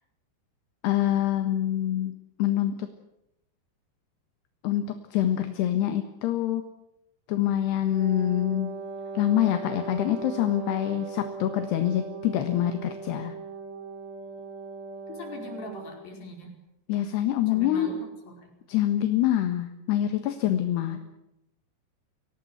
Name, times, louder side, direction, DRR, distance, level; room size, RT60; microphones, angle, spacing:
voice 1, 0.8-2.1 2.4-2.9 4.6-4.9 5.1-6.6 7.3-8.7 9.1-13.3 16.9-17.9 18.7-21.0, left 12 dB, 70° left, 7 dB, 3.4 m, -25 dB
Wind instrument woodwind instrument, 7.9-16.0, right 4 dB, 30° right, 6.6 m, -38 dB
voice 2, 15.1-16.5 17.5-18.5 20.9-21.0, left 2 dB, 55° left, 2 dB, 6.7 m, -41 dB
25.5 x 18.0 x 9.5 m, 0.86 s
omnidirectional pair, 5.2 m